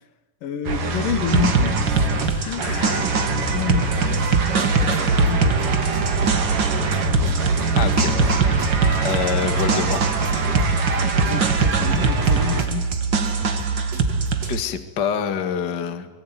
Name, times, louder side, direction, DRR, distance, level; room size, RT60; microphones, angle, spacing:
voice 1, 0.4-2.7 3.5-5.8 11.0-13.0, left 9 dB, 75° left, 3.5 m, -30 dB
sound 1, 0.6-12.6, right 4 dB, 70° right, 4.7 m, -25 dB
sound 2, 1.3-14.5, right 4 dB, 40° right, 2.2 m, -23 dB
voice 2, 2.3-3.2 7.8-8.7 9.0-10.1 10.4-10.6 14.5-16.1, left 7 dB, 35° left, 2.2 m, -27 dB
sound 3, 3.9-14.6, right 4 dB, 85° right, 5.9 m, -27 dB
25.5 x 23.0 x 9.4 m
omnidirectional pair, 3.9 m